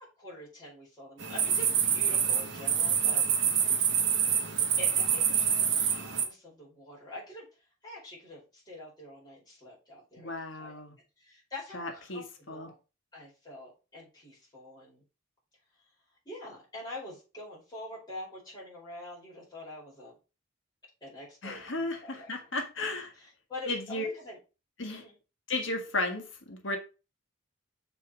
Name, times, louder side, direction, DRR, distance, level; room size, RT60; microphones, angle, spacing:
voice 1, 0.2-3.2 4.8-7.4 7.8-10.8 11.2-12.7 13.1-15.0 16.2-20.1 21.0-22.3 23.2-24.4 24.9-25.2, left 1 dB, 20° left, 5.1 m, -45 dB
sound 1, 1.2-6.3, right 7 dB, 60° right, 1.4 m, -26 dB
voice 2, 10.2-10.9 11.7-12.7 21.4-23.1 23.7-24.1 24.8-25.0 25.5-26.8, left 2 dB, 65° left, 1.7 m, -34 dB
6.9 x 4.6 x 5.1 m
head